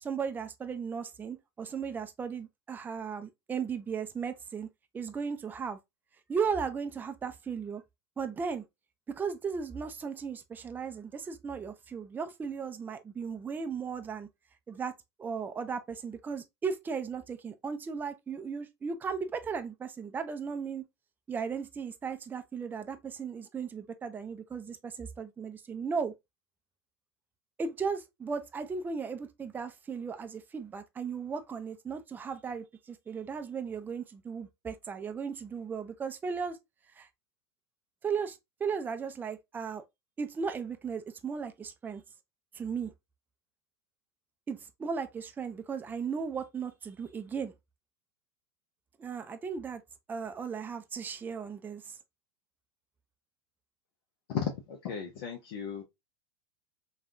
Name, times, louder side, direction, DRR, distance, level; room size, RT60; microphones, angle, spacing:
voice 1, 0.0-4.7 4.9-5.8 6.3-7.8 8.2-8.6 9.1-14.3 14.7-20.8 21.3-26.1 27.6-36.6 37.0-37.1 38.0-39.8 40.2-42.0 42.5-42.9 44.5-47.5 49.0-49.8 50.1-52.0, right 6 dB, 15° right, 0.4 m, -36 dB
voice 2, 54.3-55.8, left 8 dB, 65° left, 0.7 m, -35 dB
3.4 x 2.2 x 2.4 m
hypercardioid pair, 105°, 14 cm